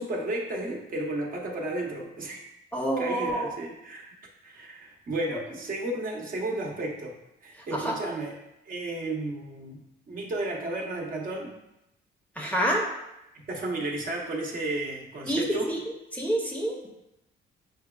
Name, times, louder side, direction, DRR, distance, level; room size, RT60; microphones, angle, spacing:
voice 1, 0.0-2.4 3.0-4.2 4.4-7.2 7.4-8.3 8.7-9.8 10.1-11.6 13.3-15.7, right 2 dB, 45° right, -1 dB, 0.8 m, -33 dB
voice 2, 2.7-3.5 7.6-8.0 12.4-12.8 15.3-15.8 16.1-16.9, right 1 dB, 10° left, -2 dB, 0.6 m, -27 dB
6.0 x 2.2 x 2.3 m, 0.87 s
cardioid pair, 90°, 20 cm